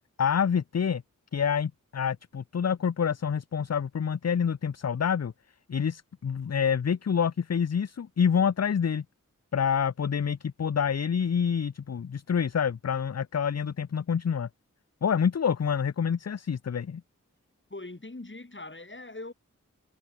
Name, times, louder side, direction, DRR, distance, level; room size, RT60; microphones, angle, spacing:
voice 1, 0.2-1.0 1.3-5.3 5.7-9.0 9.5-14.5 15.0-17.0, left 7 dB, 55° left, 0.6 m, -27 dB
voice 2, 17.7-19.3, left 2 dB, 35° left, 4.7 m, -41 dB
wide cardioid pair, 55°, 32 cm